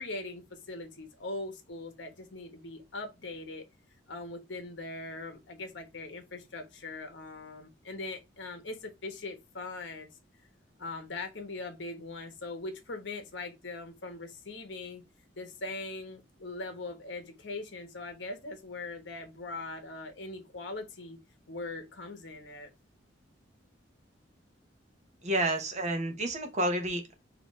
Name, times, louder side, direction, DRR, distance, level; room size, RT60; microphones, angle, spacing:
voice 1, 0.0-3.6 4.1-10.1 10.8-15.0 15.4-21.2 21.5-22.7, left 2 dB, 70° left, 1.1 m, -41 dB
voice 2, 25.2-27.2, right 1 dB, 40° right, 1.0 m, -30 dB
5.1 x 2.9 x 3.1 m
head